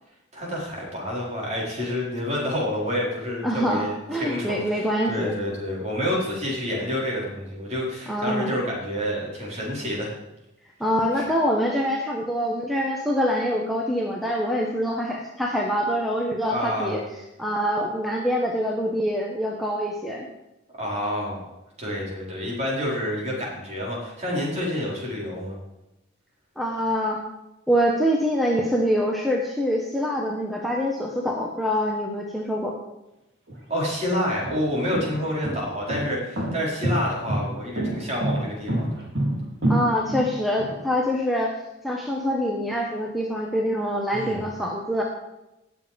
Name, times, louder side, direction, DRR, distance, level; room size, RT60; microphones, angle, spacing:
voice 1, 0.3-3.9 4.2-10.1 11.1-11.2 16.5-17.0 20.8-21.5 21.8-25.5 33.7-39.0 44.1-44.4, equal, 35° right, -4 dB, 4.9 m, -28 dB
voice 2, 3.4-5.3 8.1-8.6 10.8-17.0 17.4-20.3 26.6-27.2 27.7-32.7 39.7-41.6 41.8-45.0, equal, ahead, -1 dB, 1.1 m, -25 dB
sound 1, 33.5-33.6 34.3-40.8, right 1 dB, 60° right, 3.5 m, -26 dB
19.0 x 7.2 x 5.2 m, 0.94 s
head